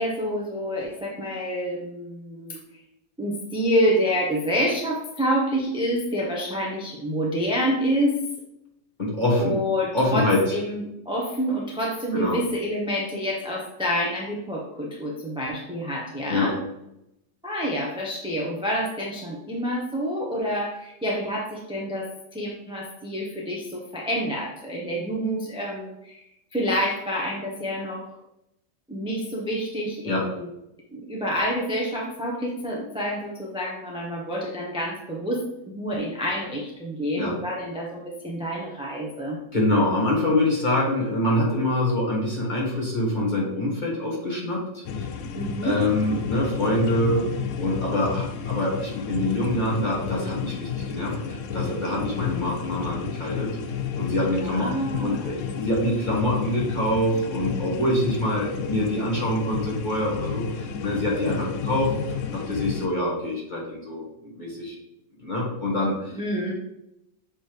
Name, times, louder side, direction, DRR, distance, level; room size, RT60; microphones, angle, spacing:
voice 1, 0.0-2.6 3.2-8.2 9.4-16.5 17.4-26.2 26.5-28.1 28.9-30.5 30.9-39.4 45.4-45.8 54.4-55.4 66.1-66.5, equal, 5° right, -3 dB, 0.5 m, -28 dB
voice 2, 9.0-9.6 9.9-10.5 12.1-12.4 16.3-16.5 30.0-30.3 37.1-37.3 39.5-45.1 45.6-47.3 47.6-53.6 54.0-54.7 55.0-64.0 64.3-64.7 65.2-66.2, left 1 dB, 25° left, -4 dB, 1.7 m, -25 dB
sound 1, 44.8-62.9, left 7 dB, 70° left, 0.7 m, -31 dB
6.7 x 4.4 x 3.3 m, 0.85 s
omnidirectional pair, 1.8 m